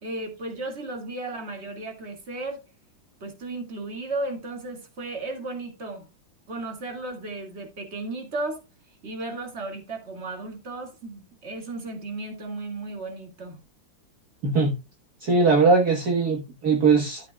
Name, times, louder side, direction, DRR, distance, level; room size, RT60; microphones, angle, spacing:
voice 1, 0.0-2.6 3.2-6.1 6.5-8.6 9.0-13.6, right 2 dB, 35° right, 2.3 m, -34 dB
voice 2, 14.4-14.8 15.2-17.3, right 4 dB, 50° right, 1.8 m, -20 dB
13.0 x 8.2 x 2.3 m
omnidirectional pair, 2.2 m